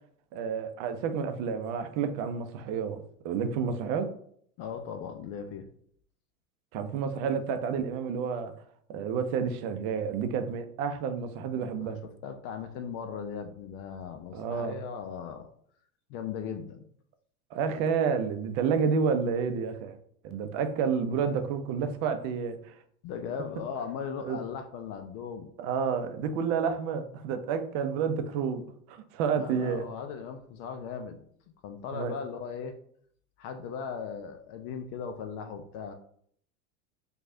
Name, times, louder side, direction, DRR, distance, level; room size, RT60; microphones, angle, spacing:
voice 1, 0.3-4.1 6.7-8.5 8.9-12.0 14.3-14.8 17.5-20.0 20.2-22.7 24.2-24.4 25.6-28.6 28.9-29.9 31.9-32.2, right 6 dB, 45° right, 8 dB, 0.6 m, -30 dB
voice 2, 4.6-5.7 11.8-11.9 12.2-15.5 16.1-16.8 23.0-25.5 29.3-31.2 31.6-32.7 33.4-35.9, left 6 dB, 40° left, 6 dB, 0.4 m, -38 dB
4.5 x 2.4 x 2.6 m, 0.64 s
hypercardioid pair, 105°, 44 cm